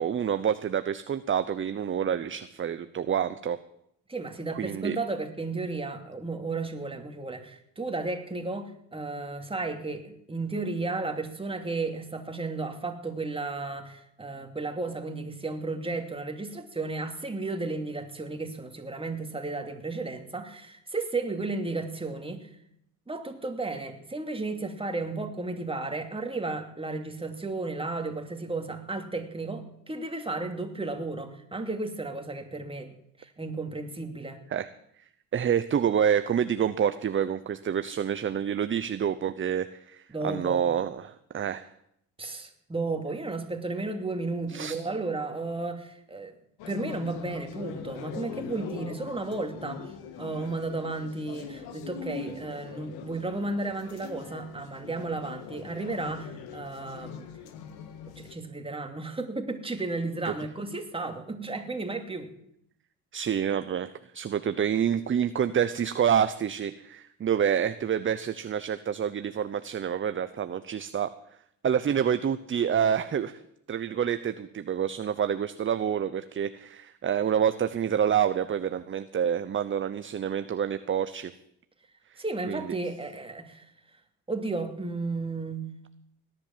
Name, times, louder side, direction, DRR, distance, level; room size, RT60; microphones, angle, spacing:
voice 1, 0.0-3.6 4.5-5.0 34.5-34.7 35.3-41.7 44.5-44.7 60.2-60.3 63.1-71.1 71.6-73.4 73.7-81.3 82.1-82.2 82.5-82.8, right 8 dB, 30° right, 12 dB, 0.8 m, -27 dB
voice 2, 4.1-22.5 23.1-34.4 40.1-40.7 42.2-46.3 46.7-49.9 50.2-57.3 58.2-62.3 82.2-83.7 84.3-85.7, right 3 dB, 15° right, 5 dB, 2.7 m, -33 dB
sound 1, 46.6-58.4, left 7 dB, 80° left, 1.9 m, -42 dB
18.0 x 10.5 x 7.4 m, 0.75 s
supercardioid pair, 85°, 37 cm